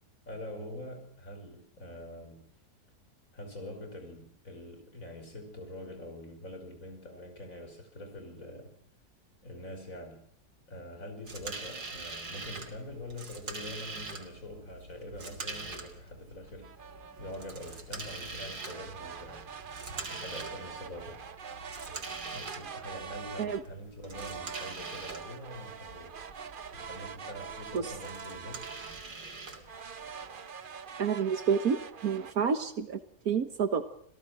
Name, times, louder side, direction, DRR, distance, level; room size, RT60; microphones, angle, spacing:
voice 1, 0.3-2.5 3.3-8.7 9.4-10.2 10.7-19.8 20.1-21.2 22.3-26.2 26.7-28.7, left 1 dB, 55° left, 6 dB, 5.7 m, -44 dB
sound 1, 11.3-30.4, right 3 dB, 90° right, 3.5 m, -44 dB
sound 2, 16.6-17.8 18.6-23.7 24.1-29.2 29.6-32.3, right 6 dB, 40° right, 1.0 m, -44 dB
voice 2, 31.0-33.0 33.3-33.8, right 6 dB, 70° right, 10 dB, 1.7 m, -28 dB
27.5 x 17.0 x 6.3 m, 0.66 s
omnidirectional pair, 1.6 m